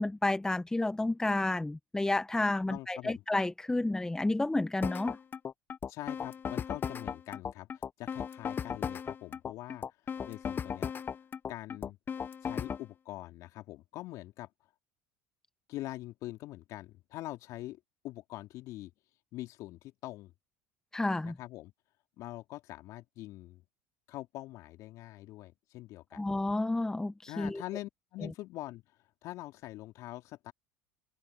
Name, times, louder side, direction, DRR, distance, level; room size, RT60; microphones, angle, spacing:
voice 1, 0.0-5.2 20.9-21.4 26.1-27.6, left 2 dB, 10° left, 1.3 m, -30 dB
voice 2, 2.7-3.2 5.9-9.9 10.2-10.9 11.5-12.0 12.4-14.5 15.7-18.9 19.3-20.3 21.2-21.7 22.2-23.6 24.1-26.2 27.3-28.8 29.2-30.5, left 16 dB, 55° left, 3.0 m, -44 dB
sound 1, 4.8-12.8, left 7 dB, 30° left, 1.1 m, -36 dB
hypercardioid pair, 75°, 7 cm